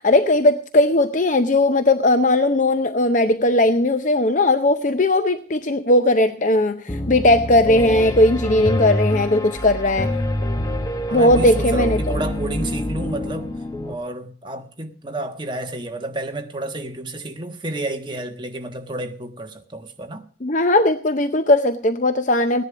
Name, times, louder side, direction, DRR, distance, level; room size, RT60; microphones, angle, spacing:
voice 1, 0.0-10.2 11.1-12.2 20.4-22.6, left 1 dB, 40° left, 0.6 m, -18 dB
Piano, 6.9-13.9, left 1 dB, 20° left, 0.9 m, -26 dB
voice 2, 11.1-13.5 13.9-20.2, right 2 dB, 25° right, 1.4 m, -30 dB
16.5 x 10.5 x 5.0 m
head